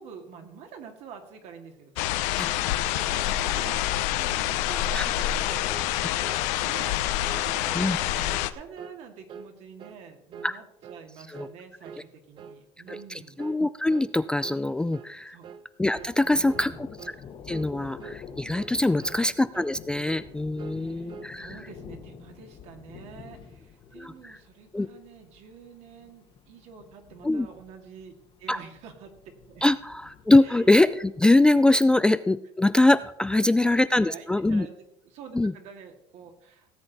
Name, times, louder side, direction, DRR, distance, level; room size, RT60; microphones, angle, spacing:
voice 1, 0.0-6.0 6.5-13.4 15.3-15.5 16.2-16.9 18.8-19.3 20.7-21.1 21.4-28.1 28.4-29.1 29.5-29.6 30.4-30.7 33.3-36.7, right 6 dB, 60° right, 4 dB, 2.3 m, -47 dB
sound 1, 2.0-8.5, left 13 dB, 75° left, 0.8 m, -27 dB
sound 2, 5.2-5.4 5.7-5.9 6.2-6.4 6.7-6.9 7.2-7.5 7.7-8.0 8.3-8.5 8.8-9.0 9.3-9.5 9.8-10.0 10.3-10.5 10.8-11.0 11.3-11.6 11.8-12.1 12.4-12.6 12.9-13.1 13.4-13.6 13.9-14.1 14.4-14.6 14.9-15.1 15.4-15.7 15.9-16.2 16.5-16.7 17.0-17.2 17.5-17.7 18.0-18.2 18.5-18.8 19.0-19.2 19.5-19.8 20.0-20.3 20.6-21.3, right 6 dB, 40° right, 0.8 m, -44 dB
voice 2, 12.9-15.4 15.8-17.1 17.5-21.5 24.0-24.4 24.7-24.9 27.2-27.5 28.5-28.6 29.6-34.7 35.3-35.5, left 2 dB, 5° left, 13 dB, 0.3 m, -23 dB
Thunder, 15.9-31.5, left 6 dB, 40° left, 1.3 m, -48 dB
17.0 x 7.9 x 4.1 m, 0.81 s
cardioid pair, 125°, 12 cm